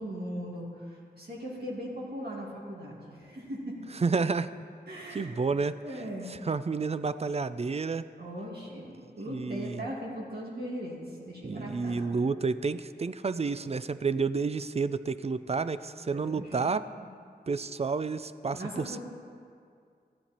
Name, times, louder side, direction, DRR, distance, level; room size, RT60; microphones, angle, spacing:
voice 1, 0.0-3.8 4.9-5.4 5.8-6.3 8.2-12.2 16.1-16.7 17.0-17.1 18.5-19.0, equal, 70° right, -5 dB, 2.3 m, -39 dB
voice 2, 4.0-4.5 5.1-5.8 6.3-8.1 9.3-9.8 11.4-16.9 17.5-19.0, right 4 dB, 40° right, 13 dB, 0.4 m, -30 dB
13.5 x 11.0 x 4.3 m, 2.2 s
wide cardioid pair, 90°, 17 cm